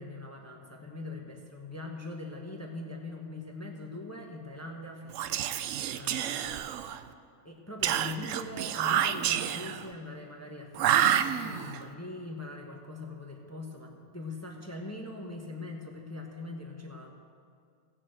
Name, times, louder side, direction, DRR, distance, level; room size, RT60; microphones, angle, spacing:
voice 1, 0.0-6.9 7.4-17.1, left 2 dB, 10° left, 1 dB, 0.9 m, -42 dB
Whispering, 5.1-7.1 7.8-9.9 10.7-11.8, right 10 dB, 70° right, 0.7 m, -28 dB
16.0 x 6.4 x 7.8 m, 2.3 s
omnidirectional pair, 1.7 m